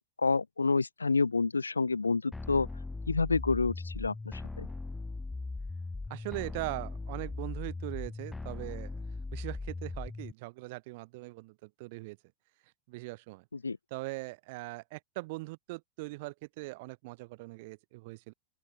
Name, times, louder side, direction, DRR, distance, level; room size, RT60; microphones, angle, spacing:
voice 1, 0.0-2.7 3.1-4.7 13.6-13.8, left 4 dB, 80° left, 0.4 m, -29 dB
sound 1, 2.3-10.3, left 3 dB, 10° left, 1.1 m, -39 dB
voice 2, 6.1-9.0 9.3-12.2 12.9-13.5 13.9-18.3, right 24 dB, 50° right, 1.4 m, -41 dB
open air
figure-of-eight pair, 90°, 0 cm